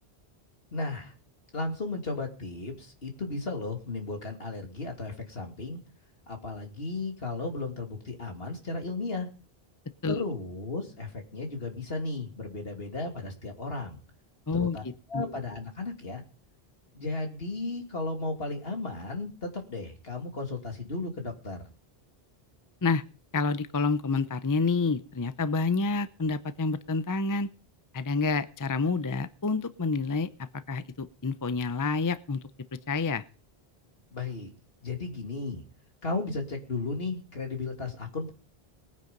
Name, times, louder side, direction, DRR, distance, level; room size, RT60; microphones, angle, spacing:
voice 1, 0.7-1.1 1.5-5.8 6.3-9.3 10.1-14.0 14.5-14.8 15.1-16.2 16.9-21.6 34.1-34.5 34.8-35.6 36.0-38.3, left 3 dB, 70° left, 3 dB, 3.0 m, -35 dB
voice 2, 14.5-15.4 22.8-23.0 23.3-27.5 27.9-30.3 30.7-32.4 32.9-33.2, left 4 dB, 25° left, 13 dB, 0.6 m, -28 dB
19.5 x 9.5 x 5.4 m, 0.37 s
omnidirectional pair, 1.0 m